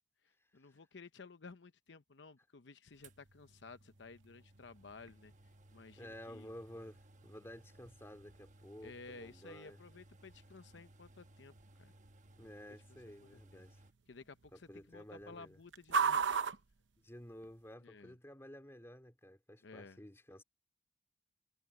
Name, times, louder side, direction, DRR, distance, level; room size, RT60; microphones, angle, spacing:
voice 1, 0.2-5.3 5.7-6.5 8.8-11.9 13.3-13.6 14.1-16.4 17.8-18.1 19.6-20.0, left 4 dB, 75° left, 0.8 m, -55 dB
sound 1, 2.9-17.7, right 6 dB, 90° right, 0.8 m, -43 dB
sound 2, 3.0-13.9, right 1 dB, 45° right, 1.2 m, -62 dB
voice 2, 6.0-9.8 12.4-13.8 14.5-15.6 17.0-20.4, equal, 15° left, 2.7 m, -53 dB
head